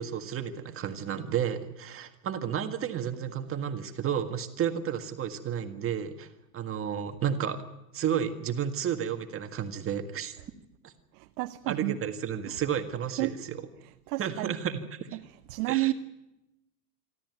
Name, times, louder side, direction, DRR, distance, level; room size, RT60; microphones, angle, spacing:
voice 1, 0.0-6.3 6.5-7.6 7.9-10.3 10.8-10.9 11.7-13.6 14.2-15.2 15.7-15.9, right 8 dB, 25° right, 6 dB, 1.8 m, -32 dB
voice 2, 11.1-12.0 12.5-12.6 13.2-13.3 14.1-14.6 15.1-15.2 15.5-15.9, right 19 dB, 70° right, 8 dB, 0.9 m, -30 dB
25.5 x 13.0 x 9.5 m, 0.94 s
supercardioid pair, 135°, 48 cm